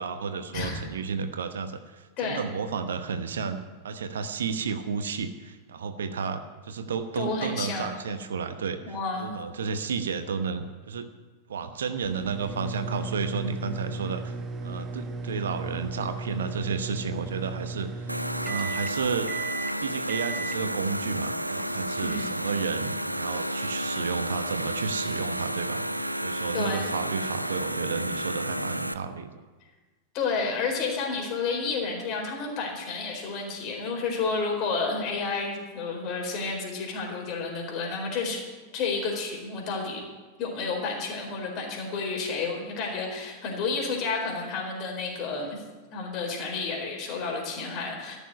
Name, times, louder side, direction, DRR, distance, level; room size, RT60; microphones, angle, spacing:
voice 1, 0.0-3.6 3.8-11.1 11.5-14.3 14.6-19.3 19.8-29.3, right 5 dB, 65° right, 9 dB, 1.0 m, -32 dB
voice 2, 7.2-7.9 8.8-9.3 22.0-22.4 26.5-26.9 30.1-38.4 38.7-40.0 40.4-45.6 45.9-48.2, left 4 dB, 40° left, 0 dB, 4.5 m, -30 dB
sound 1, 12.0-22.3, right 3 dB, 20° right, 1.1 m, -36 dB
sound 2, 18.1-28.9, equal, 90° right, 0.4 m, -31 dB
14.0 x 7.1 x 9.6 m, 1.3 s
figure-of-eight pair, 90°, 0 cm